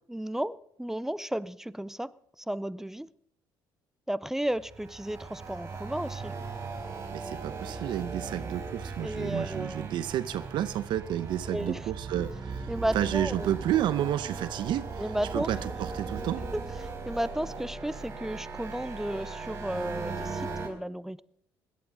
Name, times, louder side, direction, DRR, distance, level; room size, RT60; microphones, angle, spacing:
voice 1, 0.1-2.1 2.4-3.1 4.1-6.3 9.0-10.0 11.5-11.9 12.7-13.5 15.0-15.6 16.5-21.2, right 1 dB, 5° right, 0.5 m, -33 dB
sound 1, 4.5-20.7, right 4 dB, 35° right, 4.3 m, -38 dB
voice 2, 7.1-12.7 12.9-14.9 15.3-16.4, right 11 dB, 70° right, 0.7 m, -31 dB
17.5 x 11.5 x 4.7 m
cardioid pair, 100°, 8 cm